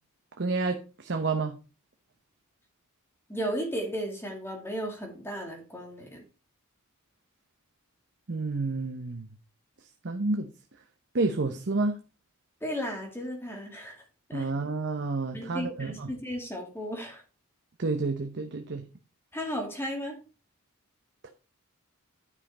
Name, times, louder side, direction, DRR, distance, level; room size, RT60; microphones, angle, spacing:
voice 1, 0.4-1.6 8.3-9.3 10.0-10.5 11.1-12.0 14.3-16.1 17.8-18.8 21.2-21.3, right 3 dB, 50° right, 0.8 m, -29 dB
voice 2, 3.3-6.2 12.6-14.0 14.3-14.5 15.3-17.2 19.3-20.2, equal, 10° left, 2.3 m, -35 dB
9.9 x 5.6 x 4.2 m
head